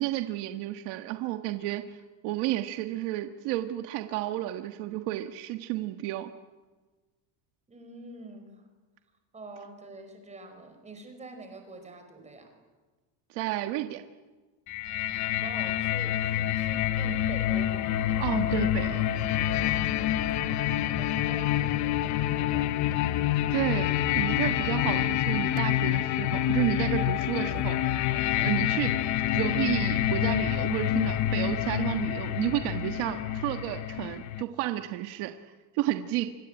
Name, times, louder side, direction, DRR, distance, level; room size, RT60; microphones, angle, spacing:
voice 1, 0.0-1.8 2.2-6.3 13.3-14.0 18.2-19.0 23.5-28.0 28.4-28.9 29.3-35.3 35.7-36.3, right 15 dB, 55° right, 7 dB, 1.5 m, -31 dB
voice 2, 7.7-8.7 9.3-12.5 15.4-17.9 20.0-22.7 23.1-23.3, right 3 dB, 15° right, 5 dB, 5.1 m, -46 dB
sound 1, 14.7-34.4, left 12 dB, 35° left, 0.8 m, -27 dB
sound 2, 18.1-25.1, left 4 dB, 65° left, 3.6 m, -41 dB
25.5 x 25.0 x 9.0 m, 1.3 s
cardioid pair, 170°, 48 cm